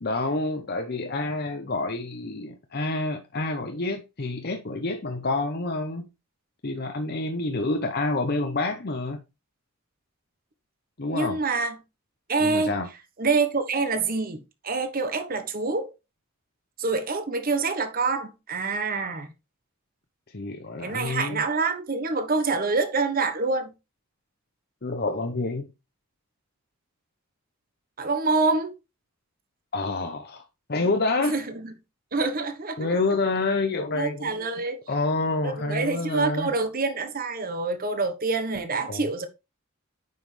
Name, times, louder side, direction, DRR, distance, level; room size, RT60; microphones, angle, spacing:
voice 1, 0.0-6.1 6.6-9.2 11.0-11.4 12.4-12.9 20.3-21.5 24.8-25.7 29.7-30.4 30.7-31.3 32.8-34.5 34.9-36.5 38.9-39.3, left 2 dB, 45° left, 0.8 m, -28 dB
voice 2, 11.1-11.8 12.3-12.7 13.2-15.9 16.8-19.3 20.8-23.7 28.0-28.7 31.3-31.7 32.1-33.0 33.9-34.8 35.4-39.3, right 3 dB, 40° right, 1.2 m, -26 dB
9.3 x 5.6 x 3.3 m
head